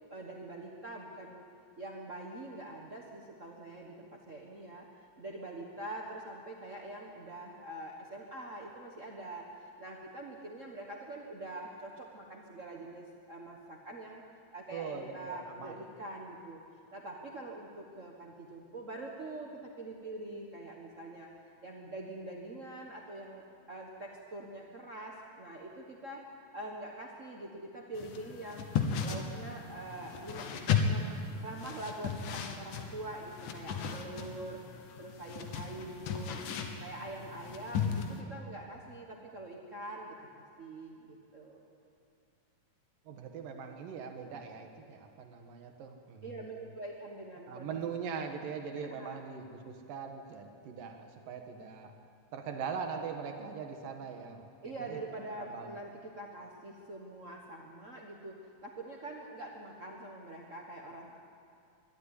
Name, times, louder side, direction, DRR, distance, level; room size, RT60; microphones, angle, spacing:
voice 1, 0.0-1.4 1.8-4.9 5.2-14.2 14.5-16.6 16.9-21.3 21.6-26.2 26.5-28.7 29.0-31.1 31.4-36.4 36.8-41.6 46.2-47.8 49.0-49.2 54.6-61.2, right 2 dB, 65° right, -1 dB, 0.7 m, -44 dB
voice 2, 14.7-15.8 43.1-46.6 47.5-51.9 52.3-55.0 55.4-55.7, right 6 dB, 85° right, 4 dB, 3.1 m, -41 dB
sound 1, 27.9-38.2, left 6 dB, 75° left, 2.7 m, -36 dB
22.5 x 12.5 x 9.9 m, 2.5 s
omnidirectional pair, 3.8 m